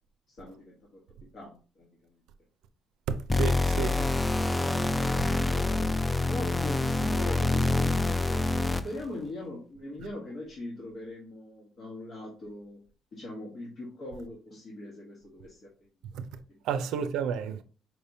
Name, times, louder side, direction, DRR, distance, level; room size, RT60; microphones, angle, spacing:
voice 1, 0.3-2.2 3.6-12.8 13.1-16.9, left 1 dB, 50° left, 1.3 m, -42 dB
sound 1, 3.3-9.0, left 2 dB, 10° left, 0.4 m, -26 dB
voice 2, 3.3-3.9 16.1-16.2 16.7-17.6, right 7 dB, 85° right, 0.5 m, -31 dB
4.5 x 3.4 x 2.7 m
cardioid pair, 110°, 0 cm